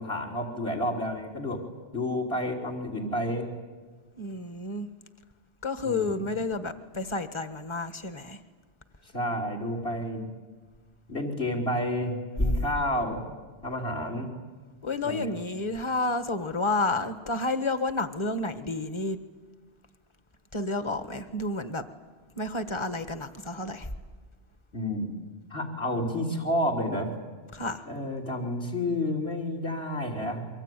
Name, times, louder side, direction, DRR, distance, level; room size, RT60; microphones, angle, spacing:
voice 1, 0.0-1.6 1.9-3.5 5.8-6.3 9.1-10.3 11.1-13.2 13.6-14.3 15.0-15.4 24.7-25.1 25.5-27.1 27.9-30.5, left 1 dB, 60° left, 2 dB, 3.5 m, -30 dB
voice 2, 4.2-4.9 5.6-8.4 12.4-12.6 14.8-19.2 20.5-21.8 22.4-23.9 27.5-27.9, left 2 dB, 25° left, 10 dB, 1.4 m, -30 dB
26.5 x 24.0 x 9.2 m, 1.4 s
omnidirectional pair, 1.2 m